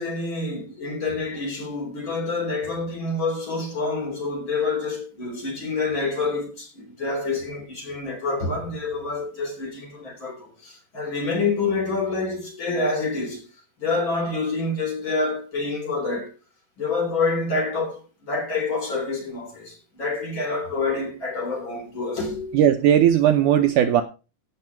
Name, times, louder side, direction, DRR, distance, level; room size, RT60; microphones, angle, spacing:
voice 1, 0.0-13.4 13.8-16.3 16.8-22.6, left 3 dB, 35° left, 4.1 m, -27 dB
voice 2, 22.5-24.0, right 10 dB, 75° right, 2.0 m, -17 dB
16.5 x 6.0 x 4.6 m
omnidirectional pair, 4.3 m